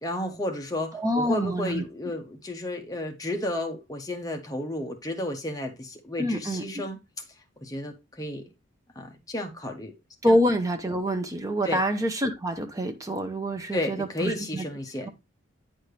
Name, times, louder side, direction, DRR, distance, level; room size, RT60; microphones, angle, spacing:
voice 1, 0.0-7.0 7.6-8.4 9.0-9.9 10.3-10.4 11.6-11.8 13.7-15.1, left 1 dB, 15° left, 0.9 m, -32 dB
voice 2, 0.9-1.8 6.2-6.6 10.2-14.6 15.0-15.1, equal, 15° right, 0.8 m, -26 dB
9.3 x 4.3 x 3.2 m
head